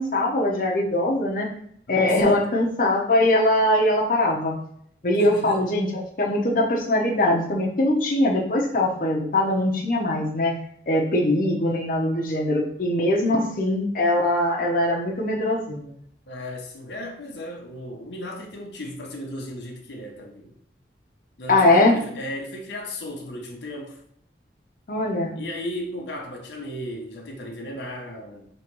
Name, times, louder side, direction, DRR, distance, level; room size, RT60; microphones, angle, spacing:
voice 1, 0.0-1.5 1.9-4.6 5.0-10.6 10.9-15.9 21.5-21.9 24.9-25.4, left 1 dB, 50° left, 0.8 m, -22 dB
voice 2, 1.9-2.5 5.2-5.7 16.3-20.5 21.4-24.0 25.4-28.5, left 1 dB, 80° left, 0.8 m, -35 dB
3.1 x 3.0 x 4.6 m
head